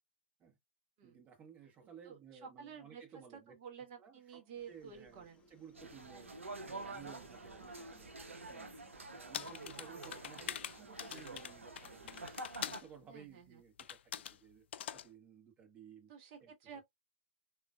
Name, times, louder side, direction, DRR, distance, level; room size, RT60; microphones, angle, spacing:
voice 1, 1.0-3.6 4.0-6.3 6.6-8.1 8.5-12.3 12.6-14.0 14.3-14.6 14.9-16.1 16.4-16.5, right 8 dB, 25° right, 1.1 m, -57 dB
voice 2, 2.0-3.0 3.3-5.4 6.1-6.4 6.7-7.1 7.4-7.6 8.2-8.5 13.1-13.6 16.1-16.9, right 7 dB, 40° right, 1.2 m, -52 dB
sound 1, 4.5-12.2, left 3 dB, 10° left, 1.7 m, -67 dB
sound 2, 5.7-12.8, right 2 dB, 90° right, 0.6 m, -48 dB
sound 3, 9.3-12.9 13.8-14.4 14.7-15.1, left 10 dB, 60° left, 0.3 m, -44 dB
3.7 x 2.4 x 2.2 m
hypercardioid pair, 115°, 7 cm